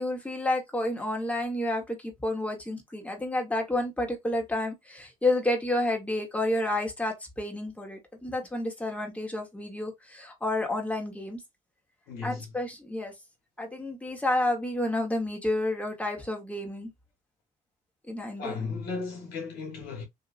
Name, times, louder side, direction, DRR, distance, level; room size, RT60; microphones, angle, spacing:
voice 1, 0.0-11.4 12.2-13.1 13.6-16.9 18.1-18.6, left 1 dB, 10° left, 1.2 m, -30 dB
voice 2, 12.1-12.5 18.4-20.0, left 4 dB, 90° left, 1.3 m, -35 dB
2.8 x 2.6 x 2.5 m
cardioid pair, 80°, 16 cm